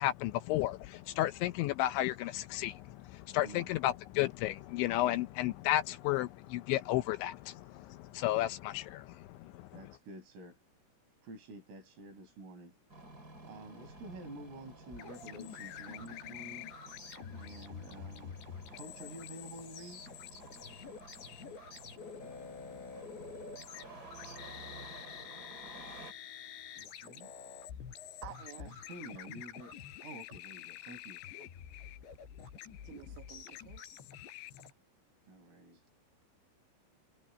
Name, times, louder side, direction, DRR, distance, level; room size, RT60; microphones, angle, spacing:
voice 1, 0.0-9.7, left 15 dB, 80° left, 2.8 m, -33 dB
voice 2, 3.4-3.7 5.0-5.1 9.7-10.6 11.2-12.8 13.4-16.7 17.3-18.4 18.7-20.0 26.8-27.3 28.6-29.8 30.0-31.2 35.3-35.8, right 2 dB, 90° right, 9.3 m, -49 dB
Engine starting, 12.9-26.1, right 3 dB, 25° right, 2.7 m, -53 dB
sound 1, 14.9-34.7, left 8 dB, 65° left, 5.7 m, -48 dB
voice 3, 28.2-28.8 31.4-31.5 32.8-33.8, right 13 dB, 70° right, 4.3 m, -50 dB
omnidirectional pair, 5.8 m